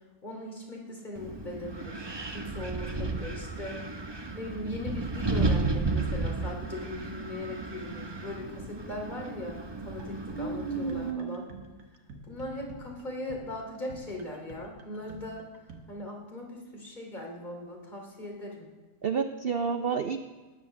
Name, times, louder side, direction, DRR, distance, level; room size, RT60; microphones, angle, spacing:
voice 1, 0.2-2.0 2.3-3.8 4.3-9.6 9.8-11.5 12.3-15.5 15.9-18.7, left 1 dB, 25° left, 0 dB, 3.0 m, -39 dB
Wind, 1.2-11.1, right 3 dB, 20° right, 0.7 m, -33 dB
sound 1, 9.7-15.8, right 2 dB, 90° right, 1.9 m, -49 dB
voice 2, 10.4-11.4 19.0-20.2, right 6 dB, 70° right, 7 dB, 0.5 m, -30 dB
18.5 x 7.7 x 6.8 m, 1.3 s
omnidirectional pair, 1.7 m